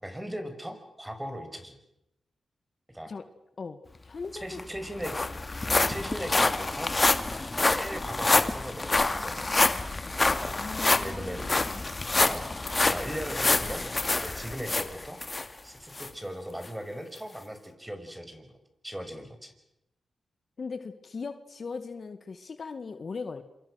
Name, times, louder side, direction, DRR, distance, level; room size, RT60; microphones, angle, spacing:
voice 1, 0.0-1.8 2.9-3.1 4.3-5.2 5.8-7.0 7.6-9.4 10.3-10.6 11.0-11.5 12.2-13.8 14.1-15.2 15.6-18.5 18.8-19.5, equal, 10° right, 7 dB, 5.9 m, -38 dB
voice 2, 4.0-4.6 10.6-11.9 20.6-23.4, left 4 dB, 55° left, 10 dB, 1.9 m, -39 dB
sound 1, 4.2-4.3 4.6-15.5 16.0-16.1 16.6-16.7, left 2 dB, 30° left, 2.2 m, -27 dB
27.0 x 25.5 x 6.5 m, 0.84 s
cardioid pair, 55°, 0 cm